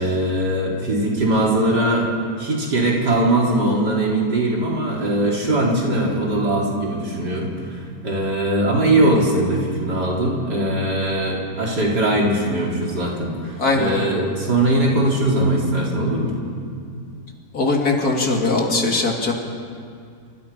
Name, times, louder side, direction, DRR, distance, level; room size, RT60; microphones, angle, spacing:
voice 1, 0.0-2.1 2.4-16.4, right 1 dB, 85° right, -3 dB, 4.8 m, -20 dB
voice 2, 13.6-14.0 17.5-19.3, left 3 dB, 65° left, 0 dB, 3.4 m, -20 dB
27.5 x 25.5 x 5.8 m, 2.3 s
omnidirectional pair, 1.7 m